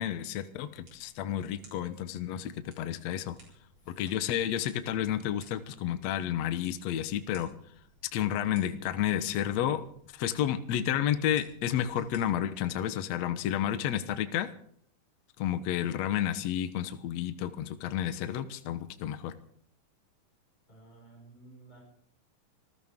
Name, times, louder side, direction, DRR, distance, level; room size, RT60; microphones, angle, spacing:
voice 1, 0.0-3.4 3.9-7.5 8.1-9.8 10.1-14.5 15.4-19.3, left 10 dB, 65° left, 10 dB, 2.1 m, -31 dB
sound 1, 0.7-12.7, right 1 dB, 35° right, 7.6 m, -59 dB
voice 2, 20.7-21.8, right 2 dB, 10° left, -3 dB, 6.2 m, -54 dB
26.0 x 15.0 x 3.7 m, 0.64 s
omnidirectional pair, 3.8 m